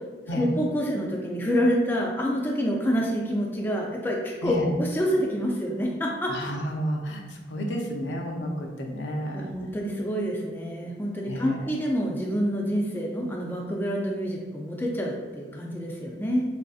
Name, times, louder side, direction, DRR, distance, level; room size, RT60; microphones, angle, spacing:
voice 1, 0.3-6.4 9.3-16.4, equal, 10° left, -2 dB, 0.3 m, -27 dB
voice 2, 6.3-9.5 11.3-11.7, equal, 80° left, 1 dB, 0.5 m, -31 dB
4.1 x 2.5 x 2.3 m, 1.4 s
head